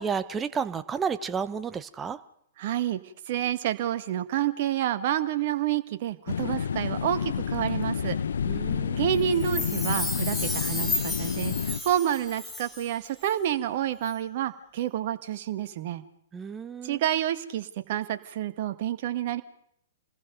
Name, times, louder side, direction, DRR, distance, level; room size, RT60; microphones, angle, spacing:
voice 1, 0.0-2.2 8.5-9.0 16.3-17.0, right 6 dB, 15° right, 13 dB, 1.2 m, -31 dB
voice 2, 2.6-3.0 3.3-8.2 9.0-16.0 16.8-19.4, right 11 dB, 45° right, 9 dB, 1.8 m, -29 dB
sound 1, 6.3-11.8, left 7 dB, 65° left, 1.0 m, -29 dB
Chime, 9.3-12.9 13.2-13.3, left 2 dB, 5° left, 2.7 m, -33 dB
29.5 x 20.5 x 5.3 m, 0.71 s
figure-of-eight pair, 110°, 0 cm